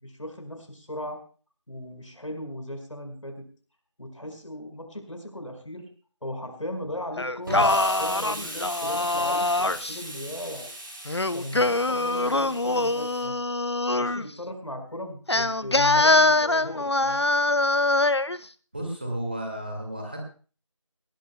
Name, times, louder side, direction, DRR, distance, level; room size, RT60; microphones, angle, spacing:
voice 1, 0.0-1.2 1.7-3.4 4.0-5.9 6.2-10.7 11.3-13.4 13.9-17.2, left 1 dB, 80° left, 5 dB, 5.1 m, -37 dB
Singing, 7.2-10.0 11.1-14.3 15.3-18.4, left 2 dB, 55° left, 0.7 m, -23 dB
Explosion, 7.5-13.2, right 1 dB, 45° right, 5.8 m, -39 dB
voice 2, 18.7-20.2, right 1 dB, 20° right, 1 dB, 2.0 m, -32 dB
20.0 x 18.0 x 2.2 m, 0.38 s
figure-of-eight pair, 175°, 16 cm